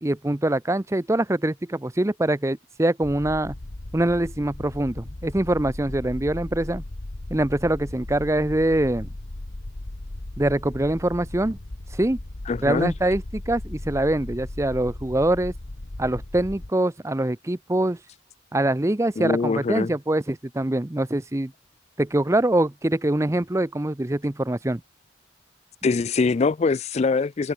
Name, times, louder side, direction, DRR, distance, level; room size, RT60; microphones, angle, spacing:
voice 1, 0.0-3.6 3.9-6.8 7.3-9.1 10.4-11.6 11.9-12.2 12.6-15.5 16.0-18.0 18.5-21.5 22.0-24.8, right 1 dB, 15° right, 0.6 m, -24 dB
sound 1, 3.0-16.7, left 1 dB, 55° left, 1.2 m, -37 dB
voice 2, 12.5-12.9 19.2-19.9 25.8-27.5, left 4 dB, 35° left, 0.3 m, -23 dB
head